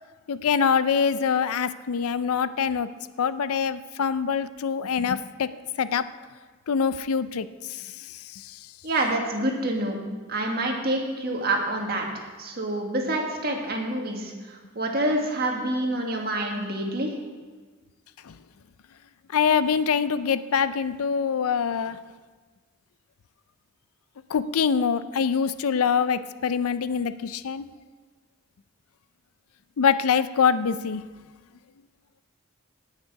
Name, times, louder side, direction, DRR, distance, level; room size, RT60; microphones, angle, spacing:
voice 1, 0.3-2.9 3.2-5.5 5.8-6.1 6.7-8.5 18.2-18.4 19.3-22.0 24.3-27.7 29.8-31.0, left 6 dB, 85° left, 14 dB, 0.5 m, -24 dB
voice 2, 8.8-10.0 10.3-17.1, right 1 dB, 45° right, 1 dB, 1.7 m, -27 dB
18.5 x 6.7 x 4.7 m, 1.4 s
head